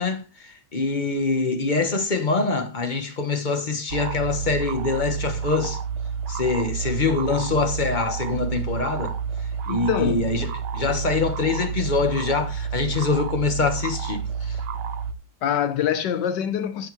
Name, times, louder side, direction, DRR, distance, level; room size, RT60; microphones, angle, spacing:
voice 1, 0.0-5.8 6.3-9.2 9.7-14.6, left 4 dB, 30° left, 1.0 m, -24 dB
sound 1, 3.9-15.1, right 6 dB, 75° right, 1.4 m, -29 dB
voice 2, 9.7-10.3 15.4-16.9, left 9 dB, 80° left, 1.4 m, -25 dB
11.0 x 7.6 x 3.1 m
omnidirectional pair, 1.9 m